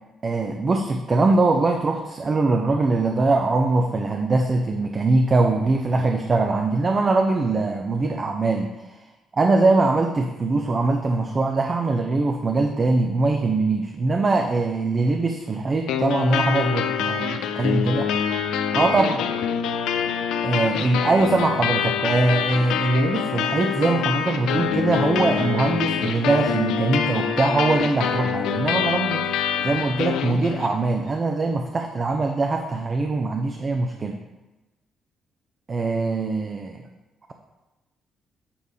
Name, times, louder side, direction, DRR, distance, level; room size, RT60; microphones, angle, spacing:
voice 1, 0.2-9.1 9.3-18.1 18.7-19.2 20.4-29.3 29.6-34.2 35.7-36.9, right 3 dB, 35° right, 4 dB, 0.6 m, -22 dB
sound 1, 15.9-30.9, left 8 dB, 90° left, 0.5 m, -25 dB
8.5 x 3.4 x 5.4 m, 1.1 s
cardioid pair, 90°, 0 cm